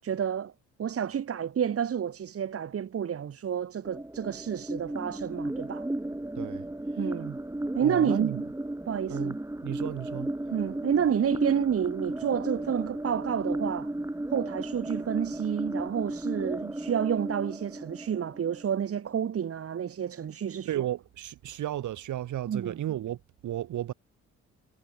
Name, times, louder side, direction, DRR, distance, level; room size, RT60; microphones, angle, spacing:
voice 1, 0.0-0.5 0.8-5.9 7.0-7.4 7.8-8.3 8.9-9.3 10.5-13.9 14.3-20.7 22.5-22.8, right 8 dB, 50° right, 2.0 m, -29 dB
sound 1, 3.8-18.8, right 1 dB, 10° right, 5.6 m, -34 dB
voice 2, 6.3-6.7 7.8-8.4 9.1-10.3 20.6-23.9, right 12 dB, 75° right, 6.8 m, -34 dB
cardioid pair, 90°, 30 cm